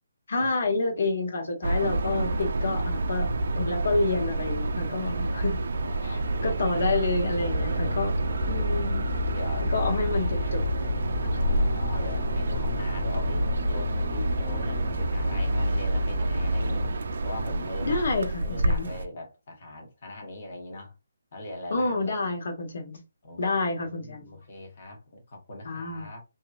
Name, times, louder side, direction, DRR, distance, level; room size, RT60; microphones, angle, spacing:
voice 1, 0.3-3.3 3.6-5.6 6.0-8.1 8.5-9.1 9.7-10.9 17.8-18.9 21.7-23.0 23.4-24.4 25.6-26.1, left 3 dB, 65° left, 1.3 m, -28 dB
voice 2, 1.6-2.2 5.1-7.0 7.7-8.7 9.2-10.6 11.3-16.9 17.2-18.0 18.4-20.9 21.3-22.3 23.2-23.4 23.7-26.2, left 1 dB, 45° left, 1.2 m, -41 dB
sound 1, 1.6-19.0, right 2 dB, 65° right, 0.4 m, -29 dB
sound 2, 7.3-16.9, left 1 dB, ahead, 1.1 m, -30 dB
3.0 x 2.8 x 2.4 m
hypercardioid pair, 165°, 0 cm